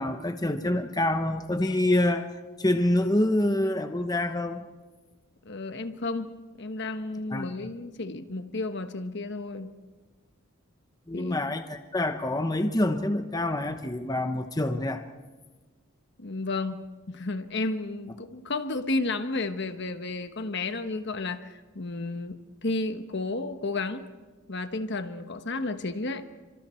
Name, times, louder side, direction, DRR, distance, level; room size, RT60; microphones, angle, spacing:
voice 1, 0.0-2.3 2.6-4.7 7.3-7.5 11.1-15.0, left 1 dB, 20° left, 7 dB, 1.0 m, -26 dB
voice 2, 5.4-9.7 11.1-11.4 16.2-22.4 22.6-24.0 24.5-26.2, left 2 dB, 55° left, 8 dB, 1.2 m, -32 dB
29.0 x 25.5 x 4.5 m, 1.3 s
head